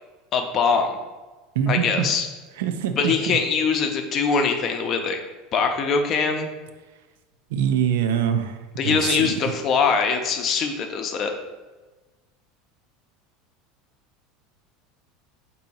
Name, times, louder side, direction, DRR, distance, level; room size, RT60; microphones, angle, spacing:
voice 1, 0.3-1.0 1.7-2.3 3.0-5.2 5.5-6.5 8.8-11.3, left 5 dB, 40° left, 5 dB, 0.6 m, -22 dB
voice 2, 1.6-2.1 2.6-3.4 7.5-8.6 8.8-9.5, right 8 dB, 80° right, 8 dB, 0.4 m, -24 dB
4.5 x 2.7 x 4.1 m, 1.2 s
supercardioid pair, 120°, 0 cm